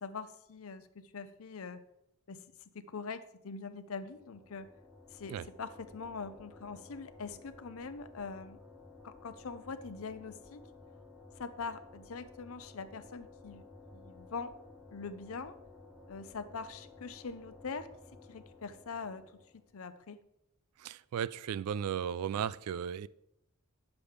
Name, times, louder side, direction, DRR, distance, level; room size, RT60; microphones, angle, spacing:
voice 1, 0.0-1.8 2.3-2.4 2.7-4.7 5.1-8.6 9.0-10.6 11.4-13.6 13.9-14.5 14.9-15.6 16.1-17.9 18.3-19.2 19.7-20.2, left 4 dB, 65° left, 0.6 m, -43 dB
sound 1, 3.9-19.7, left 3 dB, 10° right, 1.2 m, -55 dB
voice 2, 20.8-23.1, right 8 dB, 85° right, 0.3 m, -35 dB
9.6 x 7.0 x 3.3 m
head